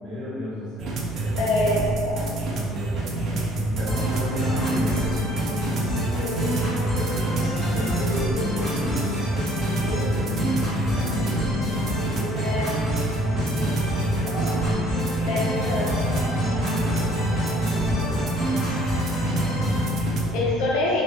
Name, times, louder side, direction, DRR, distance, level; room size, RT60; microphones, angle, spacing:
voice 1, 0.0-1.7 2.1-6.3 6.5-12.7 13.2-15.1 15.6-20.5, left 1 dB, ahead, -16 dB, 1.2 m, -34 dB
sound 1, 0.8-20.3, right 2 dB, 40° right, 0.3 m, -27 dB
voice 2, 1.4-2.2 6.2-6.5 12.4-12.7 15.3-16.0 20.3-21.0, left 2 dB, 65° left, -4 dB, 0.4 m, -25 dB
sound 2, 3.9-19.9, left 1 dB, 20° left, 1.1 m, -28 dB
2.4 x 2.1 x 2.6 m, 2.4 s
cardioid pair, 170°, 0 cm